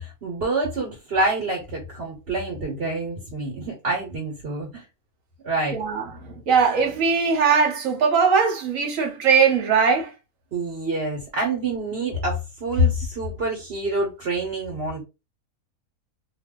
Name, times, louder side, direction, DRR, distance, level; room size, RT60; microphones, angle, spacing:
voice 1, 0.0-4.8 5.4-5.8 10.5-15.0, right 1 dB, 45° right, 1.2 m, -26 dB
voice 2, 5.7-6.0 6.5-10.1, right 6 dB, 65° right, 1.2 m, -20 dB
2.8 x 2.3 x 3.7 m
omnidirectional pair, 1.5 m